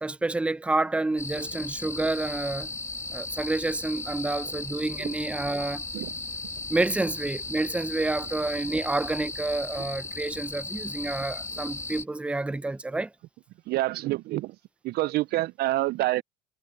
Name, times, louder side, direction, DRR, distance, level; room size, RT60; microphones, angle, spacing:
voice 1, 0.0-2.7 3.1-5.8 6.7-13.1, right 2 dB, 5° right, 0.6 m, -29 dB
sound 1, 1.2-12.0, left 3 dB, 15° left, 2.7 m, -36 dB
voice 2, 13.7-14.5 14.8-16.2, right 17 dB, 50° right, 0.4 m, -27 dB
supercardioid pair, 105°, 21 cm